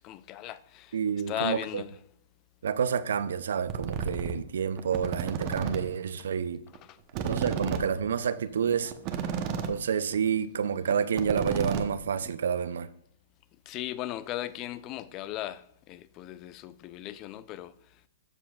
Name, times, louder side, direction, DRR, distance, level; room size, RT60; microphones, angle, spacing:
voice 1, 0.0-1.0 1.3-1.9 6.9-7.0 13.7-17.7, left 13 dB, 35° left, 0.3 m, -37 dB
voice 2, 0.9-1.8 2.6-6.6 7.2-8.9 9.7-12.9, right 7 dB, 75° right, 0.4 m, -29 dB
sound 1, 3.7-4.3 4.8-5.8 6.1-6.2 6.4-6.5 6.8-6.9 7.1-9.8 10.1-10.3 10.6-10.7 10.9-12.3, right 7 dB, 35° right, 0.8 m, -32 dB
13.5 x 4.8 x 2.3 m
hypercardioid pair, 135°, 0 cm